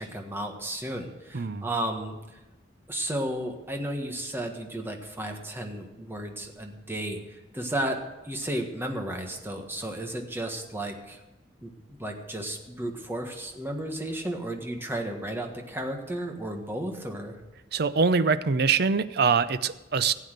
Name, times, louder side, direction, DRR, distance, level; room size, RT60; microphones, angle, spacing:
voice 1, 0.0-2.2 2.9-11.2 11.6-17.4, right 1 dB, 15° right, 3 dB, 1.5 m, -33 dB
voice 2, 1.3-1.7 17.7-20.1, right 5 dB, 60° right, 14 dB, 0.6 m, -24 dB
15.5 x 8.4 x 6.7 m, 1.1 s
head